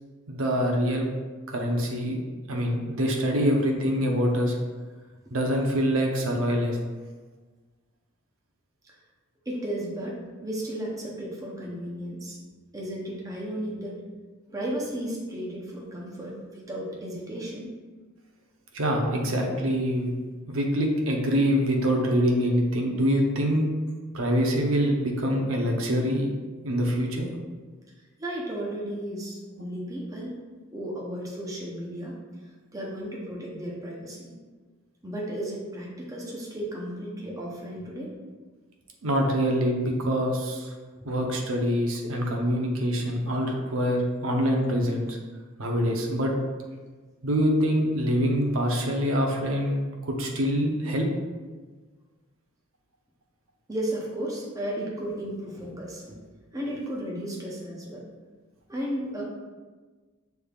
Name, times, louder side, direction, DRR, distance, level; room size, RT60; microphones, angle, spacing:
voice 1, 0.3-1.1 1.5-2.2 2.5-4.6 5.3-6.8 18.7-20.1 20.5-23.7 24.1-26.3 26.6-27.3 39.0-40.7 41.0-45.2 45.6-46.3 47.2-51.1, equal, 70° right, 1 dB, 0.8 m, -25 dB
voice 2, 9.5-12.4 12.7-14.0 14.5-17.7 28.2-30.3 30.7-32.2 32.7-34.3 35.0-38.1 41.0-41.1 53.7-56.2 56.5-58.0 58.7-59.2, right 1 dB, 15° right, -3 dB, 0.7 m, -34 dB
6.4 x 3.4 x 2.4 m, 1.3 s
head